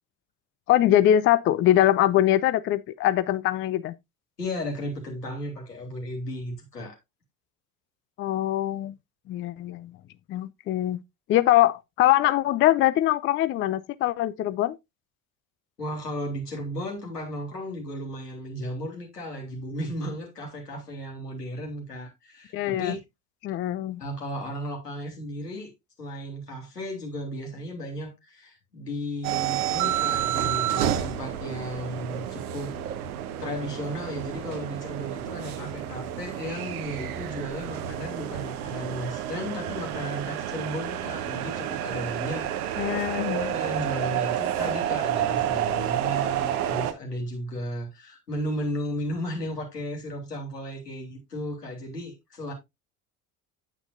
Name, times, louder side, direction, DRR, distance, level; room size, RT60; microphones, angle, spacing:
voice 1, 0.7-3.9 8.2-9.0 9.3-9.9 10.3-11.0 11.3-14.8 22.5-23.0 23.4-24.0 42.8-43.5, left 13 dB, 25° left, 0.5 m, -23 dB
voice 2, 4.4-7.0 15.8-23.0 24.0-25.7 26.0-32.7 33.4-42.9 43.3-52.5, equal, 80° left, 3.0 m, -35 dB
sound 1, 29.2-46.9, right 10 dB, 65° right, 1.1 m, -30 dB
8.8 x 8.8 x 2.5 m
figure-of-eight pair, 65°, 47 cm